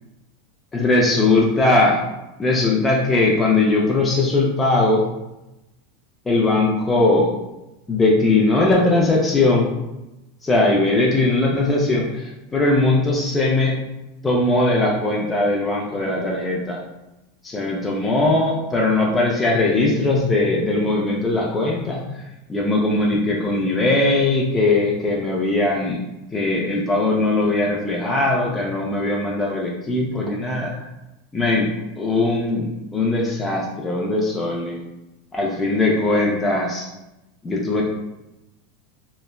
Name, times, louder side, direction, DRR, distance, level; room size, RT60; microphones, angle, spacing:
voice 1, 0.7-2.0 2.4-5.0 6.3-7.3 7.9-9.7 10.4-13.7 14.2-16.8 17.4-26.0 26.3-30.9 31.3-34.8 35.3-36.9 37.4-37.8, left 2 dB, 15° left, -3 dB, 0.4 m, -20 dB
3.0 x 2.0 x 2.3 m, 0.96 s
hypercardioid pair, 105°, 0 cm